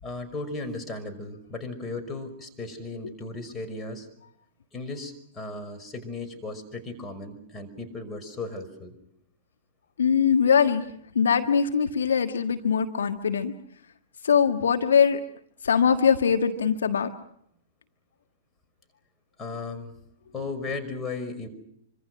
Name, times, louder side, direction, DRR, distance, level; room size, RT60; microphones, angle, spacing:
voice 1, 0.0-4.1 4.7-8.9 19.4-19.9 20.3-21.5, left 3 dB, 15° left, 6 dB, 5.6 m, -36 dB
voice 2, 10.0-10.8 11.1-13.5 14.2-15.2 15.6-17.1, left 7 dB, 70° left, 7 dB, 1.6 m, -22 dB
27.0 x 25.5 x 6.2 m, 0.73 s
figure-of-eight pair, 105°, 0 cm